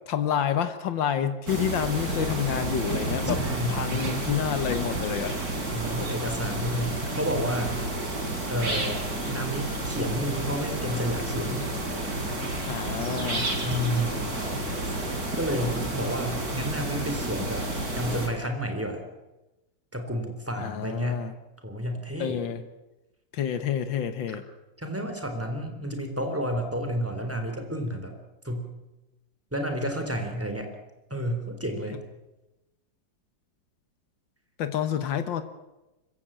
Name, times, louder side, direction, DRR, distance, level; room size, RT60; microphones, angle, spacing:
voice 1, 0.1-5.4 12.7-13.5 20.6-21.3 22.2-22.6 23.3-24.4 34.6-35.4, left 9 dB, 90° left, 10 dB, 1.9 m, -29 dB
sound 1, 1.5-18.3, right 1 dB, 55° right, 4.5 m, -30 dB
voice 2, 3.2-4.2 5.7-7.8 8.5-9.0 9.3-11.7 13.6-14.2 14.8-14.9 15.4-17.7 18.0-19.0 19.9-21.2 21.6-22.4 24.3-24.4 24.8-28.1 28.4-28.7 29.5-30.7 31.1-32.0, equal, 5° right, 5 dB, 3.8 m, -31 dB
25.0 x 15.0 x 8.9 m, 1.0 s
omnidirectional pair, 2.0 m